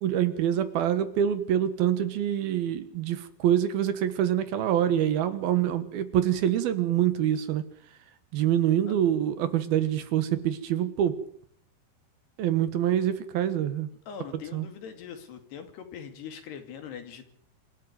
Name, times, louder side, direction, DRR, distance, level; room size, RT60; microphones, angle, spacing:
voice 1, 0.0-7.6 8.3-11.2 12.4-13.9 14.5-14.7, right 10 dB, 70° right, 12 dB, 3.0 m, -25 dB
voice 2, 14.1-17.2, left 7 dB, 70° left, 7 dB, 4.5 m, -42 dB
26.5 x 13.0 x 9.3 m, 0.63 s
omnidirectional pair, 4.9 m